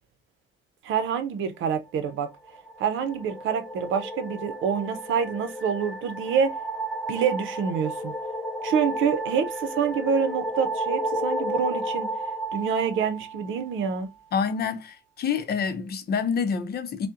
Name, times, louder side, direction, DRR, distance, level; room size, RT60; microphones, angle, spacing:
voice 1, 0.8-2.3 2.8-6.5 7.1-8.1 8.6-12.1 12.5-14.1, right 7 dB, 80° right, 0.7 m, -26 dB
sound 1, 2.4-13.9, right 1 dB, 5° left, 0.7 m, -32 dB
voice 2, 14.3-17.1, left 6 dB, 55° left, 0.6 m, -27 dB
5.3 x 2.2 x 2.5 m
cardioid pair, 90°, 20 cm